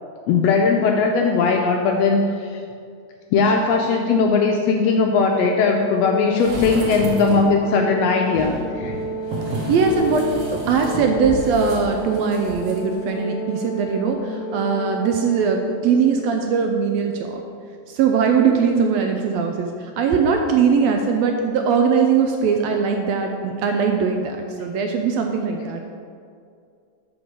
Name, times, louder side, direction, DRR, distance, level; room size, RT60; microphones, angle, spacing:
voice 1, 0.3-2.6 3.3-9.0, left 4 dB, 80° left, 2 dB, 1.5 m, -19 dB
Organ, 5.3-16.2, right 2 dB, 55° left, 1.7 m, -32 dB
sound 1, 6.3-7.6 8.3-12.8 13.1-13.2, equal, 55° right, 1.9 m, -31 dB
voice 2, 9.7-10.3 10.7-17.4 17.9-19.7 20.0-25.8, right 5 dB, 80° right, 3 dB, 1.6 m, -20 dB
6.1 x 5.3 x 6.4 m, 2.3 s
omnidirectional pair, 3.4 m